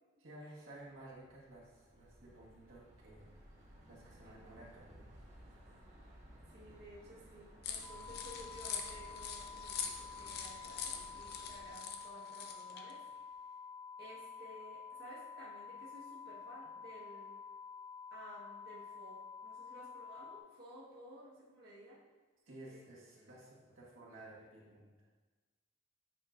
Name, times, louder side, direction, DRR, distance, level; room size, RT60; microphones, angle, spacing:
voice 1, 0.2-3.3 3.9-5.1 22.4-25.1, right 1 dB, 80° right, -5 dB, 1.6 m, -54 dB
sound 1, 1.0-11.7, equal, 35° right, 1.2 m, -58 dB
voice 2, 4.2-4.7 6.5-13.0 13.3-13.5 14.0-17.3 18.1-22.0 22.6-22.8 23.1-23.4, right 1 dB, 50° right, -8 dB, 1.3 m, -55 dB
sound 2, 7.6-12.9, left 7 dB, 55° left, 0.5 m, -44 dB
sound 3, 7.8-20.4, left 6 dB, ahead, 0.7 m, -50 dB
8.5 x 4.7 x 2.5 m, 1.3 s
head